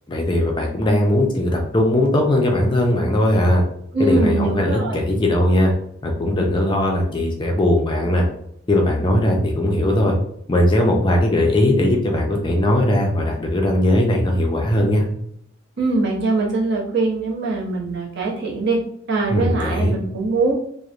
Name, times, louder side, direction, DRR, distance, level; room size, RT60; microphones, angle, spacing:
voice 1, 0.1-3.6 4.0-5.7 6.0-8.2 8.7-10.1 10.5-15.1 19.3-19.9, left 1 dB, 20° left, 0 dB, 0.4 m, -19 dB
voice 2, 3.9-5.0 15.8-18.8 19.1-20.5, right 3 dB, 55° right, -2 dB, 0.7 m, -22 dB
2.9 x 2.0 x 2.4 m, 0.70 s
head